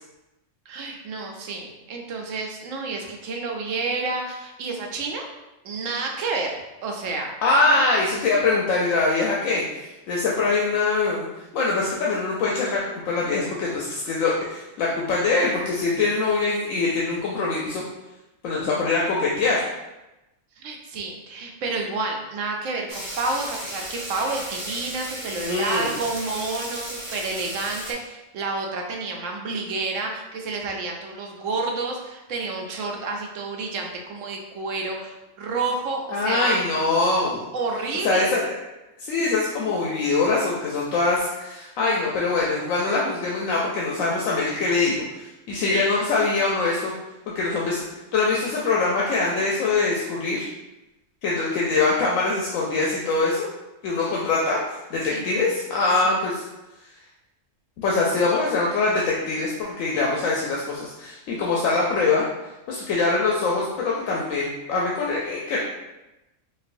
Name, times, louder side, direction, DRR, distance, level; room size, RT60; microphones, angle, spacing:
voice 1, 0.7-5.3 5.6-7.3 20.6-36.5 37.5-38.3 55.0-55.3 56.0-56.1, right 3 dB, 75° right, 1 dB, 1.0 m, -29 dB
voice 2, 7.4-11.3 11.5-17.8 18.4-19.7 25.5-25.9 36.1-37.4 38.0-38.4 39.0-46.9 47.3-47.8 48.1-50.5 51.2-53.5 53.8-54.6 54.9-56.4 57.8-62.2 62.7-65.6, left 3 dB, 85° left, -4 dB, 1.0 m, -23 dB
sound 1, 22.9-27.9, right 1 dB, 45° right, 0.8 m, -35 dB
4.1 x 2.3 x 2.5 m, 0.99 s
omnidirectional pair, 1.3 m